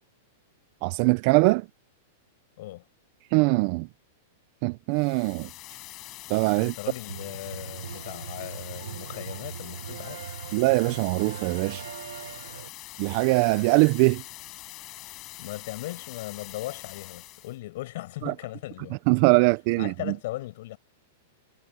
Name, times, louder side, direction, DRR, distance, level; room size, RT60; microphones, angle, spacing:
voice 1, 0.8-1.7 3.3-3.9 4.6-5.5 6.3-6.7 10.5-11.8 13.0-14.2 18.2-18.3 19.1-19.9, right 25 dB, 45° right, 0.5 m, -22 dB
sound 1, 4.9-17.6, left 18 dB, 35° left, 5.9 m, -44 dB
voice 2, 6.6-10.4 15.4-19.0 19.7-20.8, left 17 dB, 60° left, 7.8 m, -38 dB
sound 2, 7.1-12.7, right 8 dB, 90° right, 1.5 m, -40 dB
supercardioid pair, 150°, 0 cm